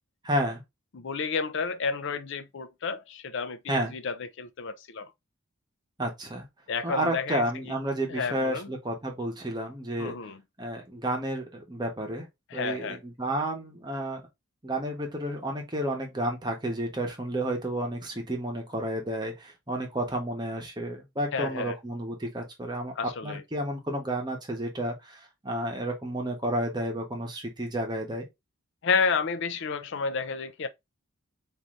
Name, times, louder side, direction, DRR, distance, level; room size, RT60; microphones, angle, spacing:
voice 1, 0.2-0.6 3.7-3.9 6.0-6.5 6.8-10.1 10.6-12.3 12.5-14.2 14.6-22.9 23.2-28.3, right 1 dB, 20° right, 1.0 m, -31 dB
voice 2, 0.9-5.1 6.7-7.4 8.1-8.7 10.0-10.4 12.5-13.0 21.3-21.8 23.0-23.4 28.8-30.7, left 5 dB, 60° left, 0.5 m, -31 dB
3.8 x 2.7 x 3.0 m
head